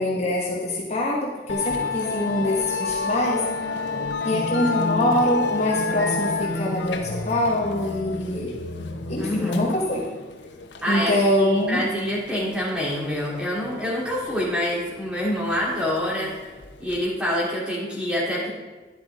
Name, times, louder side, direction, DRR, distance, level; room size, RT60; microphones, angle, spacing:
voice 1, 0.0-3.4 4.2-8.5 9.1-10.0 10.9-11.8, left 1 dB, 40° left, -3 dB, 1.4 m, -24 dB
Musical instrument, 1.5-17.0, left 3 dB, 90° left, 1.0 m, -30 dB
voice 2, 9.2-9.8 10.8-16.3 16.8-18.5, left 1 dB, 5° right, -6 dB, 3.2 m, -26 dB
11.5 x 10.5 x 3.7 m, 1.3 s
head